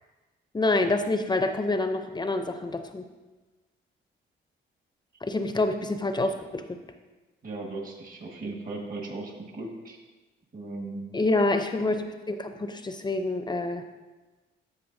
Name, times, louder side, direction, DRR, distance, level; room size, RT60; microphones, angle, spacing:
voice 1, 0.5-3.0 5.2-6.8 11.1-13.8, left 2 dB, 20° left, 7 dB, 0.6 m, -27 dB
voice 2, 7.4-10.0 10.5-11.1, right 2 dB, 45° right, 0 dB, 1.7 m, -37 dB
13.5 x 5.5 x 2.7 m, 1.2 s
cardioid pair, 90°, 20 cm